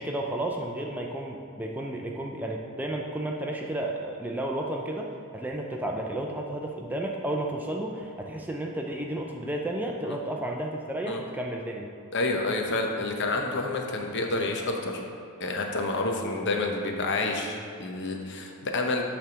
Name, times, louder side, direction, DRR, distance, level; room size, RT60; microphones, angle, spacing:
voice 1, 0.0-11.9, right 1 dB, 10° right, 0 dB, 0.4 m, -32 dB
voice 2, 12.1-15.0 15.4-19.0, left 2 dB, 55° left, 2 dB, 0.8 m, -29 dB
8.4 x 3.4 x 6.1 m, 2.4 s
head